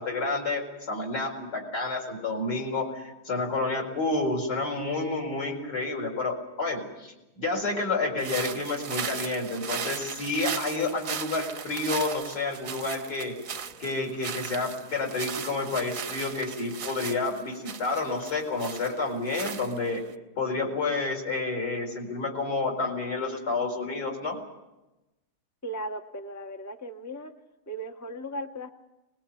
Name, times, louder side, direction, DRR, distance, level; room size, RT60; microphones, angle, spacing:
voice 1, 0.0-13.4 13.8-20.0 20.4-24.4, left 3 dB, 50° left, 0 dB, 5.1 m, -30 dB
sound 1, 8.2-20.1, right 7 dB, 50° right, 1.1 m, -37 dB
voice 2, 25.6-27.3 27.7-28.7, right 1 dB, 15° left, 4 dB, 0.7 m, -37 dB
22.0 x 20.5 x 8.4 m, 1.0 s
omnidirectional pair, 2.2 m